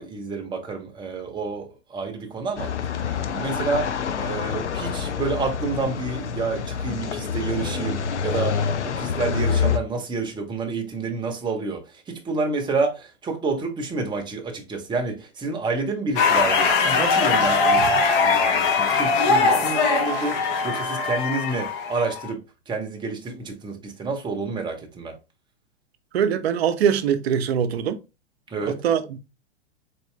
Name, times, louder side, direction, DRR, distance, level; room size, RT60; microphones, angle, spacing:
voice 1, 0.0-8.6 8.8-25.2 28.5-28.8, right 3 dB, 15° right, 0.8 m, -29 dB
sound 1, 2.6-9.8, left 6 dB, 80° left, 0.6 m, -27 dB
sound 2, 16.2-22.3, left 4 dB, 50° left, 1.0 m, -21 dB
voice 2, 26.1-28.0 28.6-29.2, right 8 dB, 65° right, 0.7 m, -22 dB
4.1 x 3.1 x 3.1 m
hypercardioid pair, 105°, 34 cm